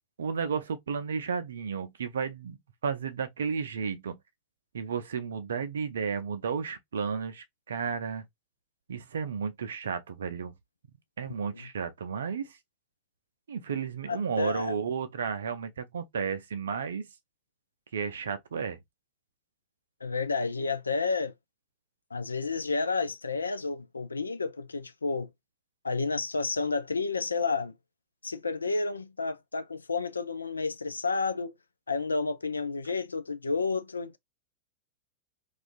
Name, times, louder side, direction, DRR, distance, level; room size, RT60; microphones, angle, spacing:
voice 1, 0.2-4.2 4.7-8.3 8.9-10.5 11.2-12.6 13.5-17.0 17.9-18.8, right 6 dB, 65° right, 0.4 m, -33 dB
voice 2, 14.1-14.8 20.0-21.3 22.1-25.3 25.8-27.8 28.2-31.5 31.9-34.2, left 4 dB, 75° left, 0.3 m, -31 dB
2.4 x 2.3 x 2.4 m
figure-of-eight pair, 90°, 0 cm